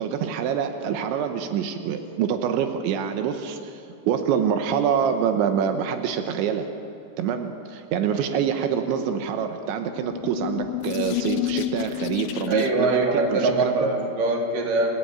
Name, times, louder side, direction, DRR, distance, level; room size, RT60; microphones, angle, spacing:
voice 1, 0.0-6.7 7.2-13.9, right 8 dB, 90° right, 6 dB, 3.6 m, -26 dB
sound 1, 9.8-13.0, left 15 dB, 75° left, 2.4 m, -30 dB
voice 2, 12.5-15.0, right 2 dB, 50° right, 1 dB, 4.5 m, -23 dB
30.0 x 15.5 x 8.9 m, 2.8 s
omnidirectional pair, 5.1 m